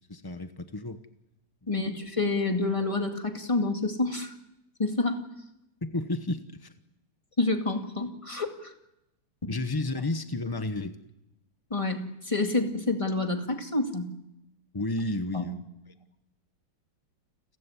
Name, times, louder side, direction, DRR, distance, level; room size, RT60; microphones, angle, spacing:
voice 1, 0.1-1.0 1.6-1.7 5.8-6.7 9.5-11.0 14.7-15.6, left 2 dB, 35° left, 9 dB, 0.3 m, -32 dB
voice 2, 1.7-4.3 4.8-5.2 7.4-8.7 9.4-9.5 11.7-14.1 15.3-15.5, left 2 dB, 15° left, 4 dB, 2.1 m, -28 dB
29.5 x 15.5 x 9.8 m, 0.89 s
omnidirectional pair, 2.3 m